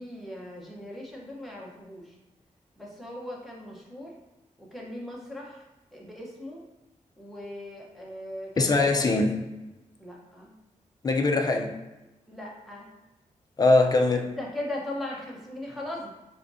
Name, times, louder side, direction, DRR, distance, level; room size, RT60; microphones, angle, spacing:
voice 1, 0.0-2.1 2.8-4.1 4.6-5.6 5.9-6.6 7.2-9.1 10.0-10.6 12.3-12.9 14.4-16.1, left 1 dB, ahead, 0.9 m, -39 dB
voice 2, 8.6-9.4 11.0-11.8 13.6-14.3, left 2 dB, 30° left, 0.5 m, -22 dB
4.6 x 3.5 x 2.6 m
wide cardioid pair, 180°, 13 cm